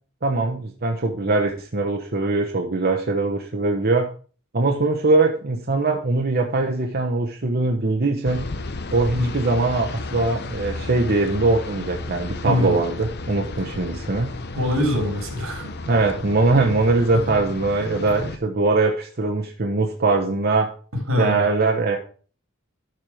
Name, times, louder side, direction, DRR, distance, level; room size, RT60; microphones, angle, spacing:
voice 1, 0.2-4.1 4.5-8.4 8.9-14.3 15.9-20.7 21.2-22.0, right 3 dB, 50° right, 2 dB, 1.0 m, -21 dB
sound 1, 8.2-18.4, left 2 dB, 55° left, 0.9 m, -33 dB
voice 2, 12.4-12.8 14.6-15.7 20.9-21.4, left 1 dB, 85° right, 3 dB, 3.5 m, -23 dB
12.5 x 4.8 x 4.9 m, 0.39 s
head